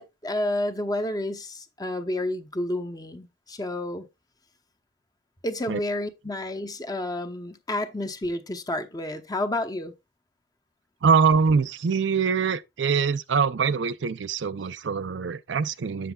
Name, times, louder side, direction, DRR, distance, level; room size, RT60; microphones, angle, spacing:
voice 1, 0.0-4.1 5.4-9.9, left 1 dB, 20° left, 0.9 m, -30 dB
voice 2, 11.0-16.1, right 5 dB, 80° right, 0.5 m, -23 dB
8.0 x 7.8 x 2.3 m
head